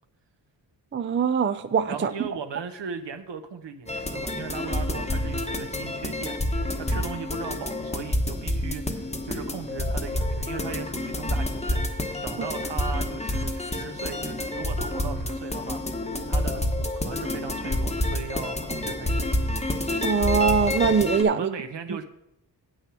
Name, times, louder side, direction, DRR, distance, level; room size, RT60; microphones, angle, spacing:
voice 1, 0.9-2.1 12.4-12.5 20.0-21.5 21.9-22.0, right 6 dB, 30° right, 12 dB, 0.4 m, -22 dB
voice 2, 1.9-6.4 6.8-15.8 16.3-19.5 21.3-22.0, right 6 dB, 70° right, 8 dB, 1.0 m, -38 dB
sound 1, 3.9-21.2, left 1 dB, 15° left, 1.0 m, -28 dB
8.2 x 6.3 x 6.2 m, 0.79 s
wide cardioid pair, 85°, 44 cm